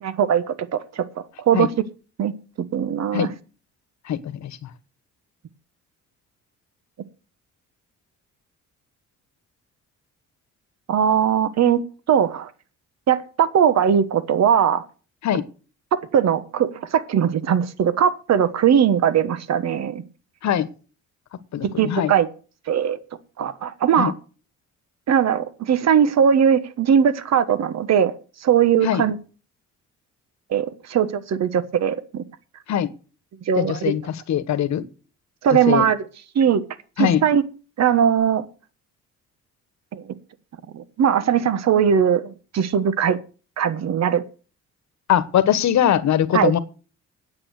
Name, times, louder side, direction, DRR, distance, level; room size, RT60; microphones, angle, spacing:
voice 1, 0.0-1.0 1.4-1.7 2.2-2.3 2.7-3.3 10.9-11.8 12.1-12.5 13.1-14.8 15.9-20.0 21.8-22.3 22.7-23.0 23.4-24.1 25.1-28.1 28.4-29.2 30.5-32.2 33.5-33.9 35.4-36.0 36.3-36.6 37.0-37.4 37.8-38.5 39.9-40.0 40.7-43.2 43.6-44.2 46.3-46.5, right 8 dB, 60° right, 14 dB, 1.3 m, -20 dB
voice 2, 4.1-4.5 15.2-15.4 20.4-20.7 21.5-22.1 24.0-24.1 28.8-29.0 32.7-32.9 33.6-34.0 34.3-34.8 35.7-35.8 37.0-37.2 45.1-46.6, left 10 dB, 65° left, 14 dB, 1.3 m, -21 dB
9.6 x 8.7 x 6.4 m, 0.36 s
cardioid pair, 90°, 30 cm